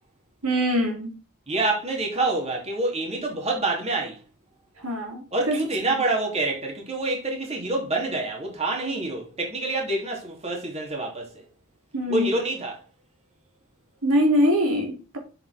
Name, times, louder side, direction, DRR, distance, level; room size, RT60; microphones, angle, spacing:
voice 1, 0.4-1.2 4.8-5.6 11.9-12.3 14.0-15.2, equal, 75° right, 3.0 m, -23 dB
voice 2, 1.5-4.2 5.3-11.4 12.1-12.8, right 2 dB, 30° right, 3.1 m, -27 dB
7.9 x 7.5 x 3.6 m
head